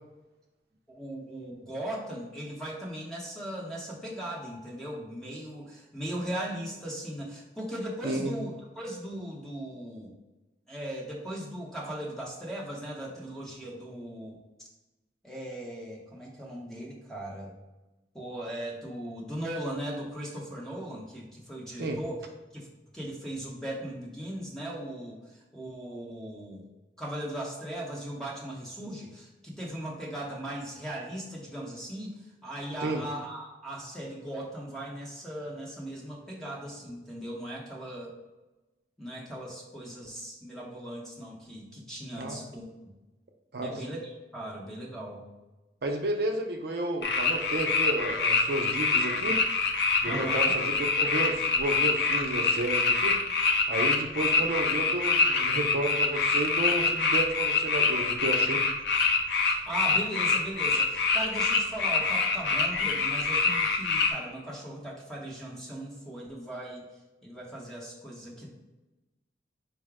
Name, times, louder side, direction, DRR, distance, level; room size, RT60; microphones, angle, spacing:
voice 1, 0.9-10.1 10.7-14.7 15.2-17.5 18.1-22.2 22.5-22.7 22.9-26.6 27.0-38.1 39.0-42.7 43.6-44.0 44.3-45.3 50.0-50.5 59.4-66.8 67.2-68.5, right 1 dB, 5° left, -3 dB, 0.8 m, -38 dB
voice 2, 8.0-8.3 21.8-22.0 32.8-33.0 42.1-42.4 43.5-43.8 45.8-49.4 50.0-53.2 53.7-58.6, right 2 dB, 60° right, 2 dB, 0.5 m, -31 dB
sound 1, 47.0-64.1, left 4 dB, 75° left, 0.6 m, -25 dB
4.7 x 2.1 x 4.7 m, 1.1 s
head